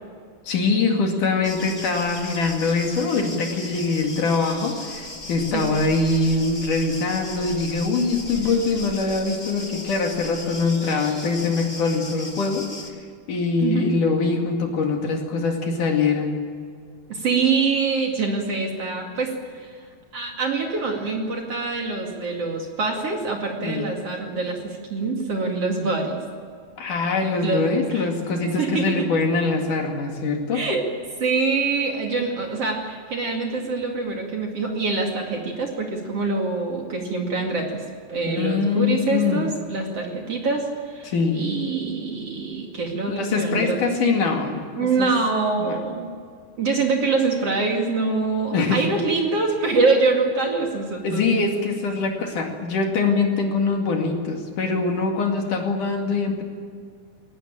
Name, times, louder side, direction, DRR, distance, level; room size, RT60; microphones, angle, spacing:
voice 1, 0.5-12.7 13.3-16.4 23.6-23.8 26.8-30.6 38.3-39.4 41.0-41.4 43.1-45.1 45.6-45.8 48.5-48.9 51.0-56.4, left 4 dB, 55° left, 2 dB, 3.6 m, -23 dB
sound 1, 1.4-12.9, left 2 dB, 20° left, 1.2 m, -37 dB
voice 2, 17.1-19.8 20.1-26.2 27.4-28.1 28.5-29.1 30.5-30.9 31.2-37.8 38.1-44.0 44.7-46.1 46.6-51.6, right 4 dB, 45° right, 1 dB, 3.0 m, -25 dB
22.5 x 19.0 x 8.9 m, 2.1 s
omnidirectional pair, 4.4 m